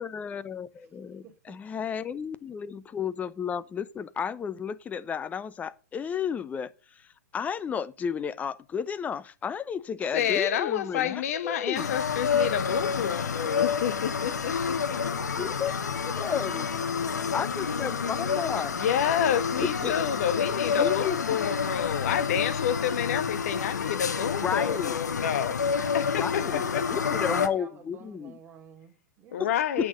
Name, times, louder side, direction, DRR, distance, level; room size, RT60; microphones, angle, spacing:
voice 1, 0.0-6.7 7.3-11.9 15.4-15.7 16.1-16.7 17.3-18.7 19.8-19.9 20.7-21.2 24.4-25.0 26.1-28.3 29.8-29.9, left 7 dB, 15° left, 0.7 m, -32 dB
voice 2, 1.2-1.5 14.8-15.6 16.5-18.9 25.6-29.6, right 7 dB, 20° right, 3.0 m, -51 dB
voice 3, 10.0-14.8 18.7-26.9 29.3-29.9, left 9 dB, 60° left, 1.2 m, -29 dB
sound 1, 11.7-27.5, left 6 dB, 85° left, 0.9 m, -29 dB
8.4 x 6.3 x 6.4 m
hypercardioid pair, 115°, 9 cm